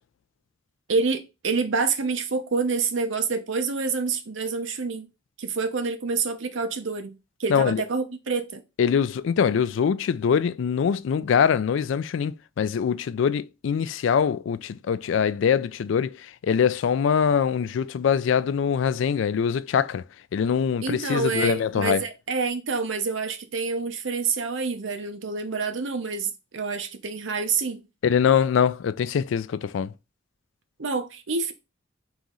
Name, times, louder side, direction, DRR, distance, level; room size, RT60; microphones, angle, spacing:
voice 1, 0.9-5.1 5.4-7.1 7.4-8.6 20.8-27.8 30.8-31.5, right 4 dB, 65° right, 0.7 m, -27 dB
voice 2, 7.5-7.8 8.8-16.1 16.4-20.0 20.3-22.0 28.0-29.9, left 7 dB, 65° left, 0.3 m, -23 dB
3.9 x 3.0 x 3.6 m
head